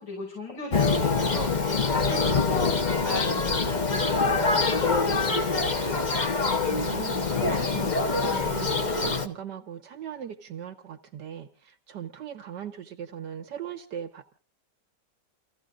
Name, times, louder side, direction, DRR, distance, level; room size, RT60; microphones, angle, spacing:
voice 1, 0.0-1.6 1.9-6.3, left 3 dB, 70° left, 6.2 m, -37 dB
Thunder, 0.7-9.3, left 4 dB, 30° left, 0.9 m, -25 dB
voice 2, 6.7-14.3, right 8 dB, 70° right, 1.7 m, -38 dB
30.0 x 15.5 x 2.5 m
omnidirectional pair, 1.9 m